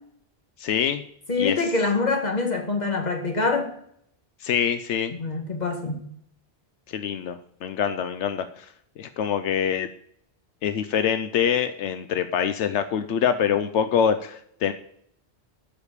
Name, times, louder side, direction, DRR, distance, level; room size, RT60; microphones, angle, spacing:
voice 1, 0.6-1.0 1.4-1.6 4.4-5.1 6.9-8.7 9.0-9.9 10.6-14.7, left 8 dB, 80° left, 10 dB, 0.9 m, -25 dB
voice 2, 1.3-3.7 5.1-6.0, left 3 dB, 40° left, 3 dB, 1.9 m, -25 dB
12.0 x 5.2 x 6.5 m, 0.69 s
omnidirectional pair, 1.2 m